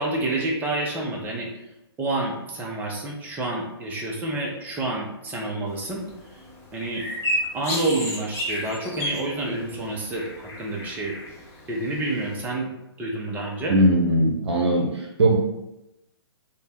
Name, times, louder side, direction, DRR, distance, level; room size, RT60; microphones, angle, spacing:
voice 1, 0.0-1.5 2.0-6.0 6.7-7.0 7.5-11.1 11.7-12.7 13.0-13.8, right 2 dB, 15° right, -1 dB, 0.5 m, -28 dB
sound 1, 5.7-12.4, equal, 20° left, 1.0 m, -33 dB
voice 2, 13.7-15.4, right 1 dB, 80° right, -1 dB, 0.6 m, -20 dB
2.6 x 2.1 x 3.5 m, 0.93 s
figure-of-eight pair, 125°, 14 cm